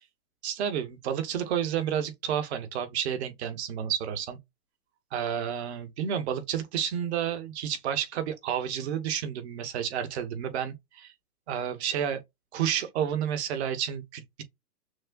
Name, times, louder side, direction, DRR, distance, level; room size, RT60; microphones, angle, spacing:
voice 1, 0.4-4.4 5.1-11.1 11.5-12.2 12.5-14.4, right 9 dB, 45° right, 1.1 m, -30 dB
6.4 x 2.1 x 2.2 m
hypercardioid pair, 160°, 48 cm